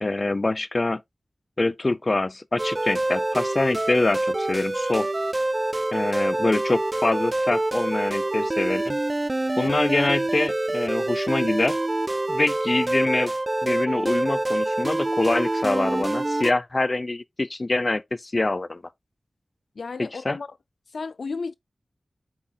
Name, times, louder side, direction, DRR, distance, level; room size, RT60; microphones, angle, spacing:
voice 1, 0.0-1.0 1.6-5.1 5.9-9.0 9.6-11.8 12.3-13.3 13.6-18.8 20.0-20.4, left 2 dB, 40° left, 0.6 m, -25 dB
sound 1, 2.6-16.5, right 2 dB, 30° right, 0.3 m, -26 dB
voice 2, 19.8-20.5 20.9-21.5, left 4 dB, 85° left, 0.3 m, -32 dB
8.1 x 6.0 x 2.3 m
wide cardioid pair, 75°, 0 cm